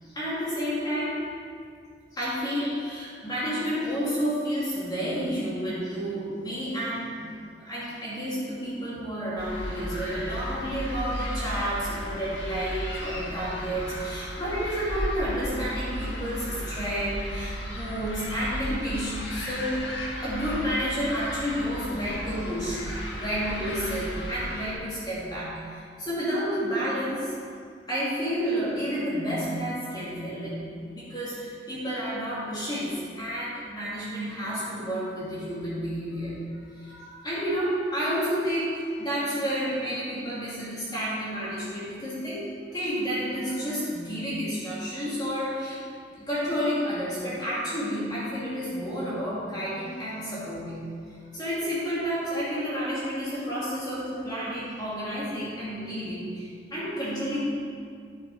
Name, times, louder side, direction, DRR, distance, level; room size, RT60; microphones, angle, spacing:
voice 1, 0.0-1.3 2.1-7.3 7.6-27.4 27.9-42.5 42.7-45.8 46.1-50.9 51.3-57.5, equal, 25° left, -9 dB, 2.3 m, -30 dB
sound 1, 9.4-24.7, equal, 70° left, 1.6 m, -35 dB
11.0 x 6.3 x 4.8 m, 2.2 s
head